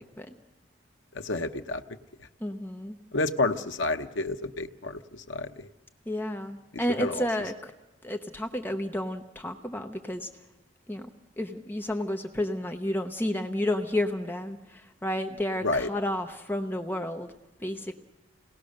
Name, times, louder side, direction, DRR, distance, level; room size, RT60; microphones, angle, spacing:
voice 1, 1.1-1.8 2.2-2.3 3.1-5.7 6.7-7.3 15.6-15.9, left 2 dB, 80° left, 8 dB, 1.0 m, -30 dB
voice 2, 2.4-3.0 6.1-7.7 8.0-10.3 10.9-11.1 11.4-17.3 17.6-17.9, left 1 dB, 10° left, 5 dB, 0.8 m, -31 dB
28.0 x 18.5 x 6.6 m, 1.0 s
head